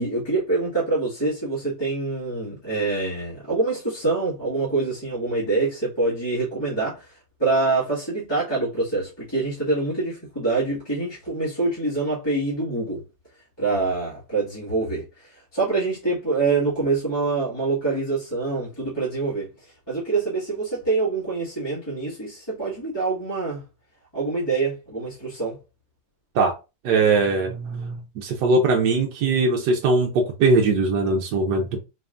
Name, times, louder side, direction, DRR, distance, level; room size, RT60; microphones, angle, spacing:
voice 1, 0.0-7.1 7.4-13.0 13.6-19.5 19.9-23.6 24.1-25.6, right 3 dB, 15° left, 1.6 m, -25 dB
voice 2, 26.8-31.8, right 3 dB, 70° right, 1.2 m, -21 dB
4.1 x 3.4 x 2.5 m
omnidirectional pair, 2.0 m